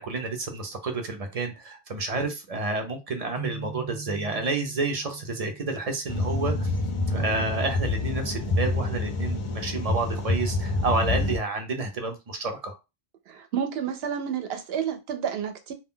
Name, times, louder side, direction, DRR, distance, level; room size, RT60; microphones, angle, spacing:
voice 1, 0.0-6.7 7.1-12.8, right 3 dB, 45° right, 0.5 m, -30 dB
sound 1, 3.4-6.9, right 4 dB, 15° right, 0.8 m, -41 dB
sound 2, 6.1-11.4, left 2 dB, 50° left, 0.4 m, -27 dB
voice 2, 13.3-15.7, right 8 dB, 75° right, 0.8 m, -30 dB
2.2 x 2.2 x 3.6 m
omnidirectional pair, 1.1 m